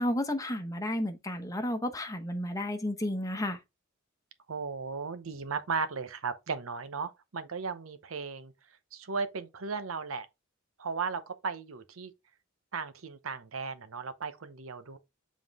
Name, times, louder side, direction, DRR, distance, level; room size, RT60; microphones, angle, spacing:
voice 1, 0.0-3.6, left 1 dB, 15° left, 0.9 m, -32 dB
voice 2, 4.5-8.5 8.9-10.3 10.8-12.1 12.7-15.0, right 5 dB, 90° right, 0.8 m, -36 dB
7.1 x 3.8 x 3.5 m
head